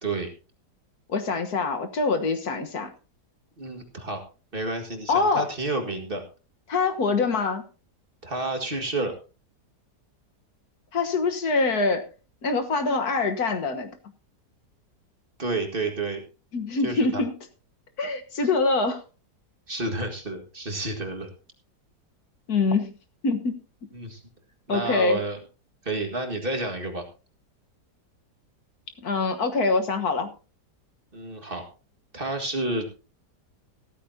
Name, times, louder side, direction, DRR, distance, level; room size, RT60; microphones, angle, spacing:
voice 1, 1.1-2.9 5.1-5.5 6.7-7.6 10.9-12.1 12.4-13.9 16.5-17.3 18.0-19.0 22.5-22.9 23.2-23.5 24.7-25.2 29.0-30.3, left 3 dB, 65° left, 7 dB, 1.8 m, -24 dB
voice 2, 3.6-4.2 4.5-6.2 8.2-9.1 15.4-16.2 16.8-17.2 19.7-21.3 23.9-24.2 24.7-25.4 25.8-27.0 31.1-31.6 32.1-32.9, right 2 dB, 35° right, 4 dB, 2.0 m, -30 dB
15.0 x 13.5 x 2.8 m, 0.34 s
omnidirectional pair, 1.8 m